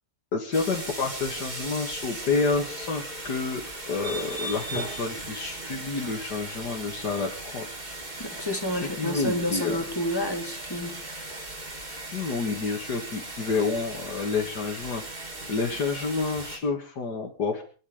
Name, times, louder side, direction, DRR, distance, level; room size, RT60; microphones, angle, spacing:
voice 1, 0.3-7.7 8.7-9.8 12.1-15.0 15.5-17.6, left 4 dB, 60° left, 0 dB, 2.6 m, -29 dB
sound 1, 0.5-16.6, right 2 dB, 25° right, 2.6 m, -38 dB
voice 2, 8.2-11.0, left 1 dB, 10° left, 2 dB, 3.1 m, -29 dB
23.5 x 11.0 x 5.1 m, 0.40 s
omnidirectional pair, 2.0 m